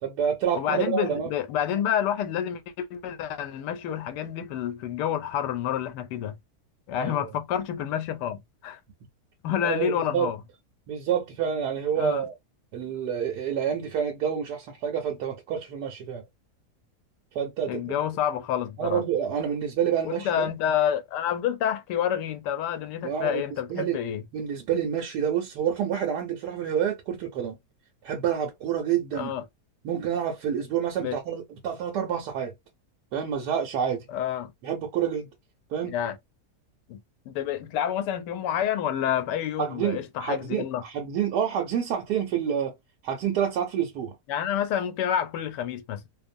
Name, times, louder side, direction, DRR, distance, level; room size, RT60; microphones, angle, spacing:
voice 1, 0.0-1.3 6.9-7.1 9.6-10.3 10.9-12.3 12.7-16.2 17.3-18.0 18.8-20.4 23.0-23.4 23.7-24.0 24.3-27.5 28.0-29.3 29.8-32.5 33.1-34.0 34.6-35.3 35.7-36.0 39.6-42.7 43.0-44.1, right 8 dB, 80° right, 1.2 m, -28 dB
voice 2, 0.5-6.4 6.9-8.8 9.4-10.4 12.0-12.2 17.7-19.0 20.0-24.2 29.1-29.4 31.0-31.2 34.1-34.5 35.9-36.2 36.9-37.0 37.3-40.8 44.3-46.0, left 9 dB, 85° left, 1.2 m, -28 dB
2.9 x 2.0 x 2.5 m
omnidirectional pair, 1.8 m